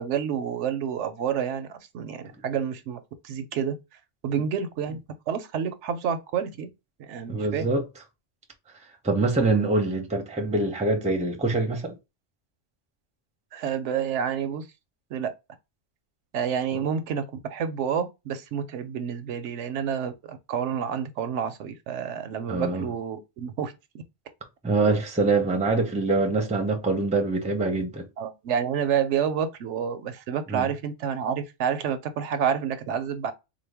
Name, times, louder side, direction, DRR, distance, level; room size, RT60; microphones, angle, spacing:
voice 1, 0.0-3.8 4.2-5.0 5.3-6.7 7.0-7.6 13.5-14.7 15.1-15.3 16.3-23.7 28.2-33.3, right 8 dB, 75° right, 0.9 m, -29 dB
voice 2, 7.3-7.8 9.0-11.9 22.5-22.8 24.6-28.1 30.5-30.7, right 3 dB, 10° right, 0.5 m, -24 dB
3.9 x 2.1 x 3.3 m
omnidirectional pair, 1.2 m